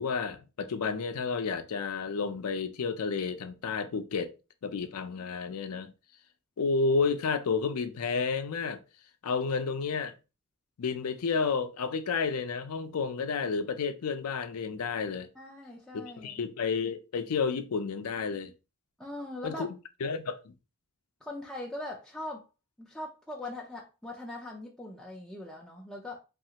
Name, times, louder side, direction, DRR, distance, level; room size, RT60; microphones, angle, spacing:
voice 1, 0.0-4.3 4.6-5.9 6.6-8.8 9.2-10.1 10.8-15.3 15.9-18.5 19.4-19.7 20.0-20.5, left 5 dB, 75° left, 0.4 m, -31 dB
voice 2, 15.4-16.4 19.0-19.7 21.2-22.5 22.8-26.2, left 1 dB, ahead, 0.4 m, -41 dB
3.1 x 2.4 x 2.8 m
head